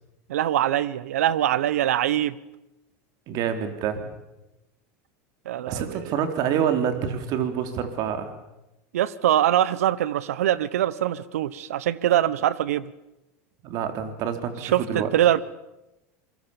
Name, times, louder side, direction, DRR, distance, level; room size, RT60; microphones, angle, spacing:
voice 1, 0.3-2.4 5.4-6.1 8.9-12.9 14.6-15.4, right 12 dB, 85° right, 19 dB, 1.0 m, -23 dB
voice 2, 3.3-4.0 5.7-8.3 13.6-15.1, right 8 dB, 55° right, 8 dB, 3.7 m, -27 dB
26.5 x 20.5 x 7.2 m, 0.96 s
supercardioid pair, 105°, 8 cm